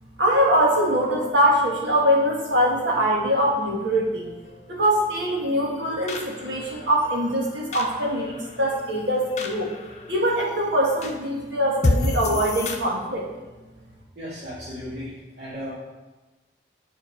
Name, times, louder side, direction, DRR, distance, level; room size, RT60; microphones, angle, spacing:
voice 1, 0.2-4.3 4.7-9.7 10.1-13.2, equal, 90° right, -2 dB, 1.8 m, -23 dB
sound 1, 0.6-12.8, left 2 dB, 40° left, 0.7 m, -33 dB
voice 2, 14.2-15.1 15.4-15.7, equal, 65° right, -12 dB, 2.3 m, -35 dB
7.8 x 4.6 x 4.7 m, 1.1 s
head